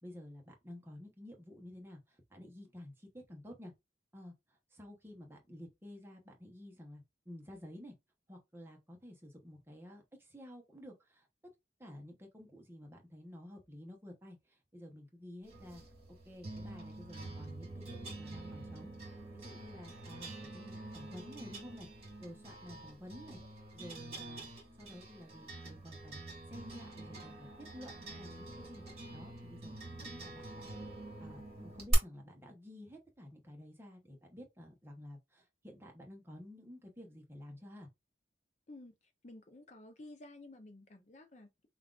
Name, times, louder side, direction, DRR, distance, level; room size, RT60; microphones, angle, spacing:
voice 1, 0.0-3.7 4.1-7.9 8.3-11.3 11.8-15.8 16.1-24.5 24.8-26.2 26.5-28.8 29.1-29.7 30.0-30.8 31.2-37.9, left 1 dB, 10° right, 0.9 m, -52 dB
sound 1, 15.5-31.9, right 2 dB, 30° right, 2.1 m, -45 dB
voice 2, 39.2-41.7, left 2 dB, 40° left, 0.6 m, -53 dB
5.6 x 2.4 x 2.4 m
head